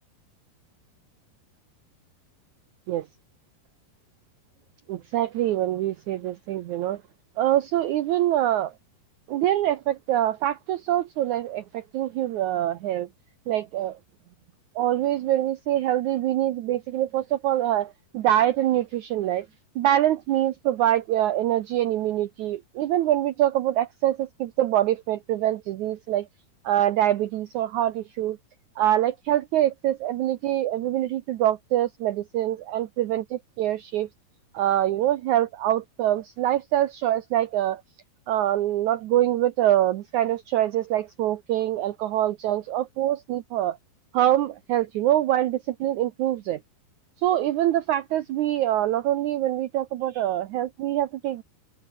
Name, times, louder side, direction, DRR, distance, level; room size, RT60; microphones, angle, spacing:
voice 1, 4.9-7.0 7.4-8.7 9.3-13.1 13.5-14.0 14.7-19.5 19.7-26.3 26.6-28.4 28.8-34.1 34.5-37.8 38.3-43.8 44.1-46.6 47.2-51.4, right 12 dB, 80° right, 1.7 m, -24 dB
omnidirectional pair, 4.7 m